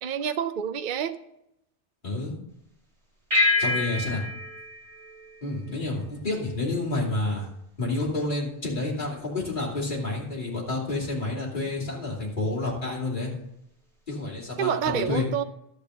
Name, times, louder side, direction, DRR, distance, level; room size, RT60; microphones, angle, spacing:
voice 1, 0.0-1.2 14.6-15.4, right 9 dB, 50° right, 0.7 m, -28 dB
voice 2, 2.0-2.4 3.6-4.2 5.4-7.5 7.8-13.3 14.1-15.3, left 2 dB, 45° left, 3.1 m, -29 dB
sound 1, 3.3-6.1, left 3 dB, 30° right, 2.6 m, -27 dB
12.5 x 5.1 x 7.8 m
omnidirectional pair, 1.2 m